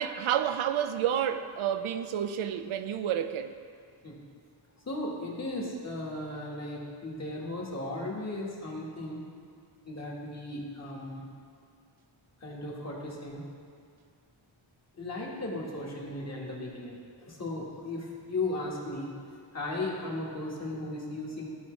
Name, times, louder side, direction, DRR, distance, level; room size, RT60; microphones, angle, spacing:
voice 1, 0.0-3.5, right 9 dB, 80° right, 9 dB, 0.6 m, -30 dB
voice 2, 4.8-9.2 9.8-11.2 12.4-13.4 15.0-19.1 19.5-21.5, left 2 dB, 35° left, -3 dB, 1.5 m, -36 dB
14.0 x 4.8 x 3.2 m, 2.3 s
wide cardioid pair, 145°, 48 cm